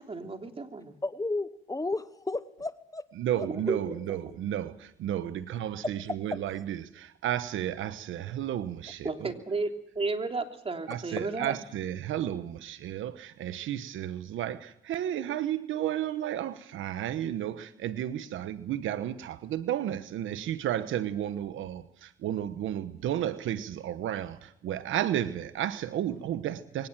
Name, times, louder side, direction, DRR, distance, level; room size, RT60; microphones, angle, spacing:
voice 1, 0.0-0.9 3.5-4.3 9.0-11.6, right 3 dB, 30° right, 3.2 m, -33 dB
voice 2, 1.0-3.0 3.4-3.7 5.8-5.9 6.3-6.4, left 2 dB, 15° left, 1.0 m, -33 dB
voice 3, 3.2-9.3 10.9-26.9, right 11 dB, 80° right, 1.2 m, -33 dB
23.5 x 18.0 x 7.6 m
cardioid pair, 90°, 20 cm